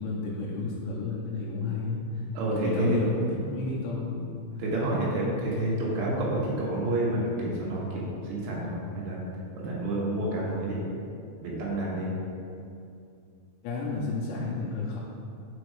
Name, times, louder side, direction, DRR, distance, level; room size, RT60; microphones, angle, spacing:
voice 1, 0.0-2.0 2.5-4.4 13.6-15.0, left 3 dB, 85° left, -5 dB, 3.3 m, -31 dB
voice 2, 2.4-3.0 4.6-9.2 9.5-10.8 11.4-12.1, right 1 dB, 70° right, -5 dB, 3.4 m, -29 dB
6.9 x 5.4 x 4.7 m, 2.5 s
omnidirectional pair, 5.1 m